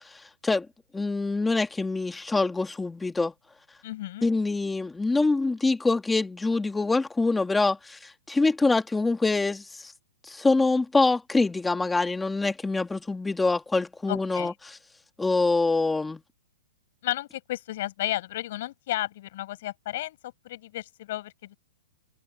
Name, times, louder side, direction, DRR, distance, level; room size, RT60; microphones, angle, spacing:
voice 1, 0.9-3.3 4.2-9.9 10.3-14.5 15.2-16.2, left 3 dB, 5° left, 1.7 m, -25 dB
voice 2, 3.8-4.3 14.1-14.5 17.0-21.6, left 15 dB, 45° left, 7.4 m, -33 dB
open air
hypercardioid pair, 170°, 0 cm